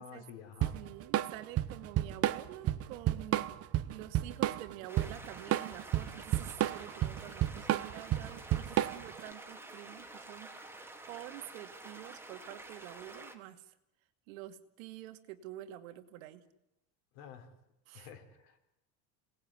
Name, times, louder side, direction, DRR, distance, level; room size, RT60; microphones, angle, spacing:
voice 1, 0.0-0.8 17.1-17.5 17.9-18.7, left 7 dB, 80° left, 6 dB, 5.2 m, -50 dB
Drum kit / Drum, 0.6-9.2, right 13 dB, 35° right, 1.0 m, -31 dB
voice 2, 0.7-3.5 3.8-13.8 14.3-16.5 17.9-18.1, right 14 dB, 90° right, 9 dB, 2.4 m, -48 dB
sound 1, 4.9-13.4, right 2 dB, 5° right, 2.6 m, -49 dB
27.0 x 19.0 x 9.7 m, 0.88 s
cardioid pair, 145°, 39 cm